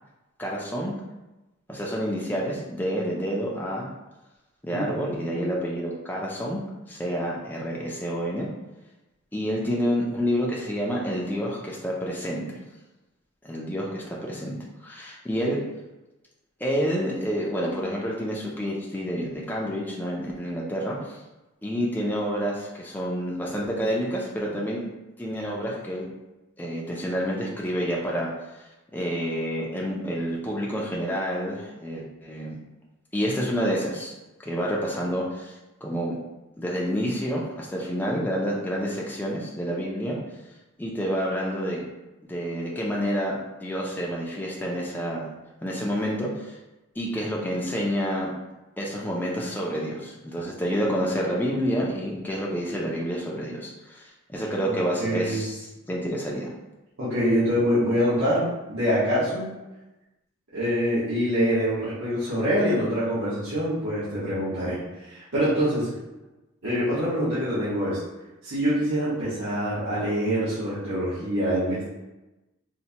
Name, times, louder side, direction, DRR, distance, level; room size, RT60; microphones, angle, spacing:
voice 1, 0.4-0.9 1.7-3.9 4.6-6.6 6.9-8.5 9.3-12.5 13.4-14.6 14.8-15.6 16.6-21.2 21.6-24.8 25.2-26.1 26.6-28.3 28.9-32.6 33.1-34.1 34.4-36.1 36.6-40.2 40.8-41.8 42.3-45.3 45.6-46.6 47.0-48.3 48.8-56.5, equal, 10° left, -4 dB, 0.4 m, -28 dB
voice 2, 4.7-5.4 55.0-55.4 57.0-59.5 60.5-64.8 65.1-65.9 66.6-68.0 68.4-71.9, equal, 70° right, -13 dB, 1.3 m, -25 dB
4.2 x 2.2 x 2.8 m, 1.0 s
head